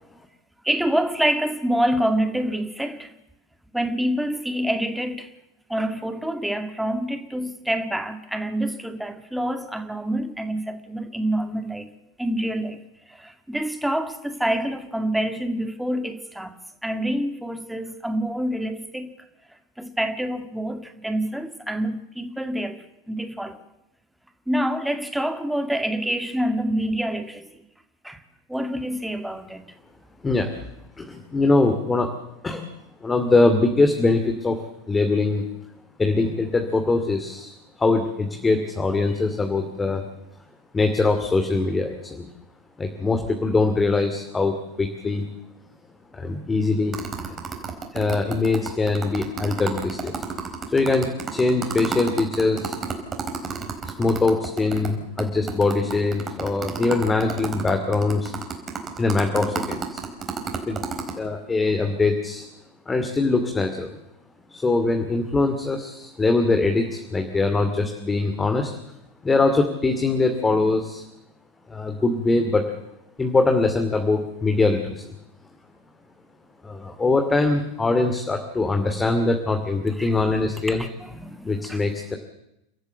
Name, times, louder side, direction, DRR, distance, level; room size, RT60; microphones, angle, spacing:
voice 1, 0.6-3.1 3.7-5.3 5.7-11.9 12.2-12.8 13.1-16.6 16.8-19.1 19.8-23.6 24.5-27.5 28.0-28.2 28.5-29.6 80.0-80.2 80.7-81.8, right 1 dB, 5° right, 2.1 m, -27 dB
voice 2, 31.0-32.1 32.4-32.7 33.0-34.6 34.9-35.4 36.0-40.0 40.7-42.3 42.8-45.3 46.1-46.9 47.9-50.1 50.7-52.8 53.8-58.3 59.0-60.0 60.7-60.9 61.2-62.5 62.9-64.0 64.5-68.8 69.2-71.0 71.7-72.7 73.2-75.0 76.6-80.8 81.4-82.2, left 3 dB, 15° left, 2.5 m, -22 dB
sound 1, 46.9-54.9 55.2-55.3 55.5-61.1, right 6 dB, 30° right, 4.4 m, -30 dB
30.0 x 13.5 x 8.0 m
figure-of-eight pair, 90°, 0 cm